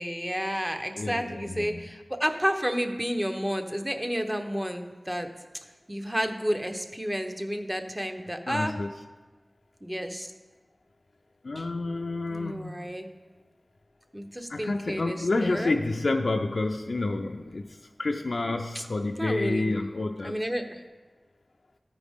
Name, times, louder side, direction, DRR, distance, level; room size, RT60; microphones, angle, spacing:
voice 1, 0.0-5.3 5.9-8.8 9.8-10.3 11.6-11.7 12.3-13.1 14.1-15.7 18.7-18.8 19.2-19.7 20.2-20.8, equal, 15° right, 6 dB, 0.8 m, -31 dB
voice 2, 1.0-1.8 8.5-8.9 11.4-12.8 14.5-17.7 18.0-20.4, left 2 dB, 75° left, 2 dB, 0.4 m, -29 dB
14.0 x 4.9 x 3.6 m, 1.3 s
wide cardioid pair, 45°, 0 cm